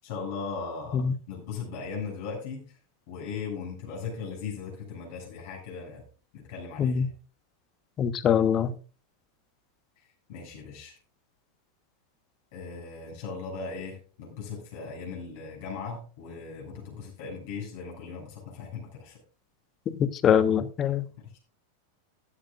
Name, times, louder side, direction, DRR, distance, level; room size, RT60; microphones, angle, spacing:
voice 1, 0.0-2.8 3.1-6.0 6.3-7.1 10.0-11.0 12.5-19.2 21.2-21.4, left 5 dB, 50° left, 7.0 m, -38 dB
voice 2, 8.0-8.7 20.2-21.0, left 8 dB, 30° left, 1.2 m, -23 dB
15.5 x 13.0 x 2.5 m
figure-of-eight pair, 90°, 0 cm